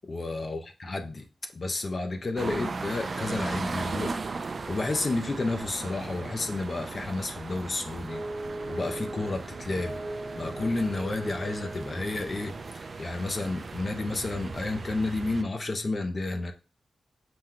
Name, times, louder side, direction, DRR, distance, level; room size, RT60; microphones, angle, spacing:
voice 1, 0.0-1.3 1.5-4.2 4.7-8.3 8.7-10.0 10.4-16.5, left 2 dB, 40° left, 0.4 m, -31 dB
sound 1, 2.4-15.4, right 4 dB, 45° right, 0.3 m, -37 dB
sound 2, 6.0-6.8 7.1-7.3 8.1-13.5, right 1 dB, 65° right, 1.0 m, -40 dB
5.9 x 2.2 x 3.7 m
wide cardioid pair, 145°, 0 cm